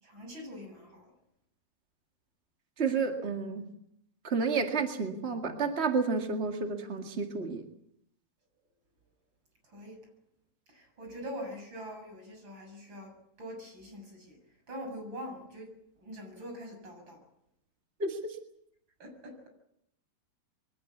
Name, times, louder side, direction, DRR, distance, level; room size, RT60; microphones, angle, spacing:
voice 1, 0.0-1.1 9.7-10.0 10.7-13.1 13.4-14.4 14.7-15.7 16.0-17.2 19.0-19.5, equal, 25° right, 3 dB, 7.8 m, -43 dB
voice 2, 2.8-3.6 4.2-7.6 18.0-18.3, right 4 dB, 45° right, 3 dB, 0.8 m, -30 dB
23.0 x 18.0 x 8.5 m, 0.77 s
omnidirectional pair, 4.8 m